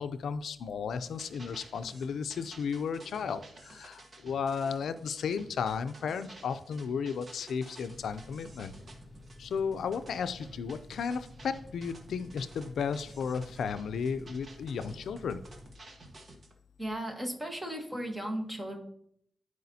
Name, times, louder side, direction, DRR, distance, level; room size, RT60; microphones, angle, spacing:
voice 1, 0.0-8.7 9.4-15.4, left 6 dB, 80° left, 11 dB, 0.4 m, -34 dB
sound 1, 0.9-16.5, right 2 dB, 35° right, 1.1 m, -53 dB
sound 2, 7.9-15.7, left 1 dB, 10° left, 0.8 m, -52 dB
voice 2, 16.8-18.8, right 1 dB, 15° right, 2 dB, 1.3 m, -36 dB
13.5 x 4.9 x 2.8 m, 0.68 s
wide cardioid pair, 165°, 0 cm